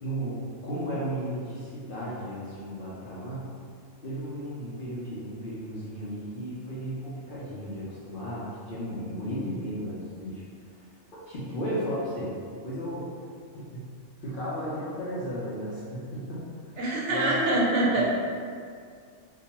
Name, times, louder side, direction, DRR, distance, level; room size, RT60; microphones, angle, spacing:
voice 1, 0.0-3.5 4.0-10.9 11.3-13.1 13.5-13.9 14.2-16.4 17.1-17.4 17.9-18.0, equal, 60° left, -9 dB, 0.6 m, -34 dB
voice 2, 16.8-18.0, right 2 dB, 70° right, -5 dB, 0.9 m, -24 dB
2.3 x 2.3 x 2.8 m, 2.2 s
omnidirectional pair, 1.3 m